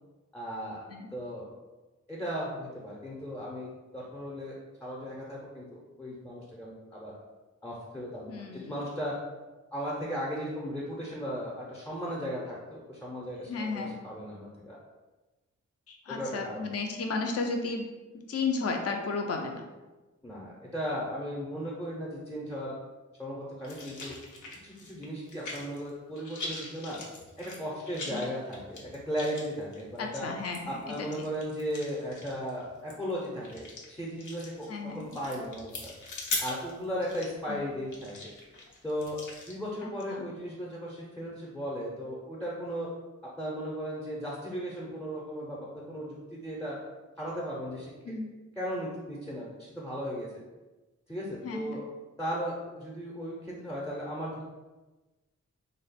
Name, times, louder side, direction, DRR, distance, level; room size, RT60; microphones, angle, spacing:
voice 1, 0.3-1.5 2.1-3.7 3.9-7.1 7.6-9.1 9.7-14.8 16.1-16.6 20.2-22.7 23.2-24.1 24.6-27.0 27.4-28.8 29.1-30.3 30.7-34.7 34.9-35.9 36.4-38.3 38.8-39.2 39.5-42.9 43.4-46.8 47.2-47.9 48.6-50.3 51.1-51.9 52.2-54.4, equal, 10° left, -5 dB, 0.6 m, -36 dB
voice 2, 8.3-8.8 13.5-13.9 15.9-17.9 18.3-19.7 28.1-28.3 30.0-31.3 34.7-35.2 37.5-37.7 39.8-40.3 48.0-48.3 51.4-51.8, left 4 dB, 55° left, 3 dB, 0.5 m, -34 dB
sound 1, 23.6-25.9 26.2-39.6, left 3 dB, 90° left, 0.7 m, -41 dB
3.3 x 2.2 x 4.0 m, 1.2 s
wide cardioid pair, 115°, 29 cm